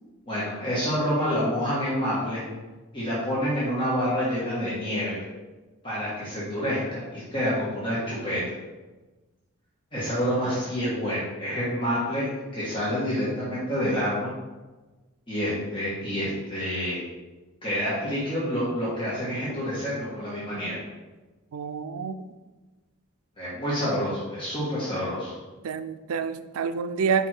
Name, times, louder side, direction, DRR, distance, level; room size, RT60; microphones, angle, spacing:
voice 1, 0.3-2.4 2.9-5.2 5.8-8.5 9.9-14.3 15.3-17.0 17.6-20.8 23.4-25.3, equal, 25° left, -9 dB, 1.5 m, -28 dB
voice 2, 21.5-22.1 25.6-27.3, right 6 dB, 80° right, 11 dB, 0.4 m, -28 dB
5.3 x 4.8 x 4.4 m, 1.2 s
head